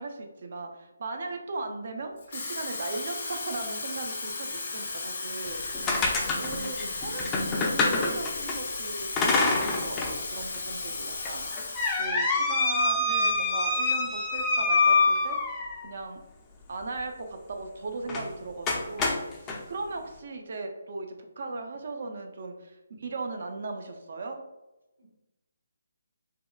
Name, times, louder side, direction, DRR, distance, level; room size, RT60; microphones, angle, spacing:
voice 1, 0.0-5.8 6.3-7.3 7.7-11.4 12.0-15.4 15.8-16.2 16.7-24.4, right 3 dB, 55° right, 4 dB, 0.4 m, -37 dB
Water tap faucet / Fill (with liquid), 2.2-12.1 12.5-12.7, left 3 dB, 50° left, 0.7 m, -35 dB
sound 1, 5.5-8.6 9.2-10.2 10.5-10.6 11.2-15.9 18.1-18.3 18.7-19.6, left 3 dB, 15° left, 0.4 m, -26 dB
voice 2, 6.1-6.9 7.3-7.6 25.0-25.1, right 1 dB, 85° right, -4 dB, 1.4 m, -44 dB
3.4 x 2.1 x 2.3 m, 1.0 s
figure-of-eight pair, 150°, 0 cm